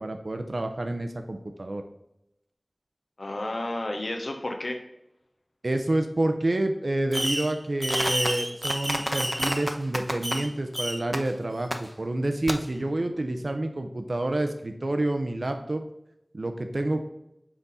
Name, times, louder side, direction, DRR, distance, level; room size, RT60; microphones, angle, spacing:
voice 1, 0.0-1.8 5.6-15.8 16.3-17.0, right 1 dB, 75° right, 6 dB, 0.6 m, -28 dB
voice 2, 3.2-4.8 13.3-13.4, left 1 dB, 80° left, 4 dB, 0.8 m, -32 dB
Fireworks, 7.1-7.5 7.8-10.5 10.7-11.2 11.7-11.8 12.5-12.6, equal, 10° right, 0.6 m, -28 dB
5.8 x 4.1 x 4.0 m, 0.84 s
wide cardioid pair, 45°, 0 cm